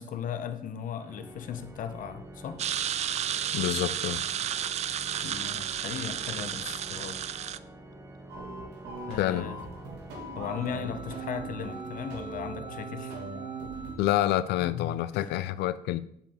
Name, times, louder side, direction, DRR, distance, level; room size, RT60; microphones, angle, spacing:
voice 1, 0.0-2.6 5.2-7.2 9.1-9.6 10.4-13.2 14.6-15.3, left 8 dB, 55° left, 8 dB, 0.8 m, -37 dB
Organ, 1.0-11.7, right 1 dB, 15° right, 0.9 m, -48 dB
sound 1, 2.6-7.6, right 10 dB, 40° right, 0.4 m, -32 dB
voice 2, 3.5-4.2 9.2-9.5 14.0-16.0, left 14 dB, 80° left, 15 dB, 0.5 m, -27 dB
sound 2, 8.3-14.0, right 3 dB, 85° right, 2.0 m, -39 dB
7.4 x 7.0 x 3.7 m, 0.71 s
cardioid pair, 110°, 17 cm